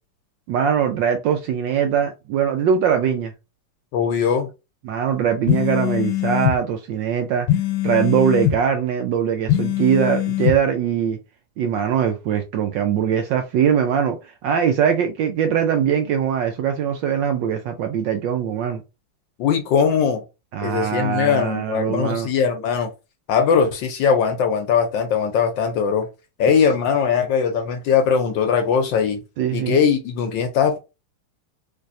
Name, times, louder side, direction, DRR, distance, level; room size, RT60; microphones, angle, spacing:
voice 1, 0.5-3.3 4.8-7.5 7.8-11.2 11.6-18.8 20.5-22.3 29.4-29.8, right 8 dB, 75° right, 1.1 m, -21 dB
voice 2, 3.9-4.5 19.4-20.2 20.6-22.9 23.3-26.1 26.4-29.2 29.5-30.8, left 6 dB, 70° left, 1.2 m, -20 dB
sound 1, 5.5-6.6 7.5-8.6 9.5-10.6, left 13 dB, 85° left, 1.6 m, -21 dB
3.3 x 3.3 x 2.5 m
omnidirectional pair, 2.4 m